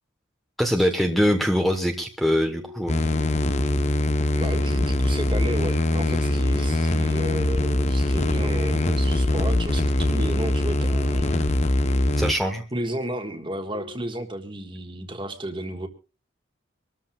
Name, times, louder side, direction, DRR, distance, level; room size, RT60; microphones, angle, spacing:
voice 1, 0.6-3.0 12.2-12.6, equal, ahead, 4 dB, 1.1 m, -23 dB
sound 1, 1.5-2.0 2.5-3.0 3.4-3.9 4.3-4.8 5.3-5.8 6.2-6.7 7.2-7.6 8.1-8.6 9.0-9.5 10.0-10.5 10.9-11.4 11.9-12.3 12.8-13.3 13.7-14.2, left 3 dB, 55° right, 1.2 m, -42 dB
sound 2, 2.9-12.3, left 1 dB, 35° left, 0.9 m, -22 dB
voice 2, 4.3-11.4 12.7-15.9, right 1 dB, 25° right, 6 dB, 1.6 m, -33 dB
25.5 x 13.5 x 2.3 m, 0.33 s
head